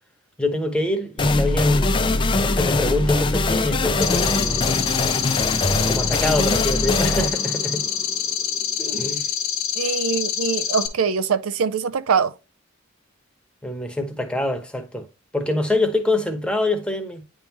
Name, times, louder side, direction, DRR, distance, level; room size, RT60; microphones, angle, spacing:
voice 1, 0.4-2.0 2.4-4.6 5.9-7.8 8.8-9.3 13.6-15.1 15.3-17.2, left 2 dB, 5° left, 0.9 m, -25 dB
sound 1, 1.2-8.6, left 2 dB, 20° left, 0.4 m, -22 dB
sound 2, 4.0-10.9, left 9 dB, 80° left, 1.0 m, -26 dB
voice 2, 9.8-12.3, right 6 dB, 75° right, 0.5 m, -23 dB
9.7 x 3.6 x 2.9 m
head